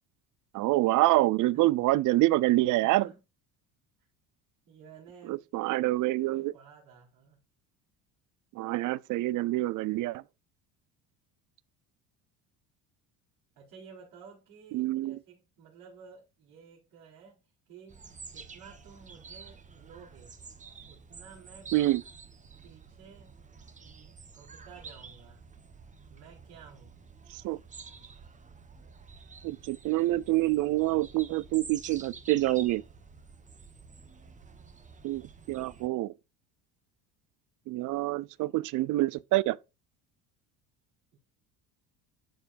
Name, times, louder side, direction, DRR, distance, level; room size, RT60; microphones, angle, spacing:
voice 1, 0.5-3.1 5.3-6.5 8.6-10.2 14.7-15.2 21.7-22.0 27.4-27.6 29.4-32.8 35.0-36.1 37.7-39.6, right 17 dB, 60° right, 0.5 m, -26 dB
voice 2, 2.8-3.2 4.6-5.4 6.3-7.4 13.5-17.4 17.7-20.3 20.9-21.7 22.6-23.4 23.8-25.4 26.1-26.9 41.1-41.2, right 6 dB, 75° right, 4.6 m, -53 dB
sound 1, 17.9-35.9, right 5 dB, 20° right, 1.0 m, -49 dB
12.5 x 4.6 x 2.5 m
cardioid pair, 125°, 36 cm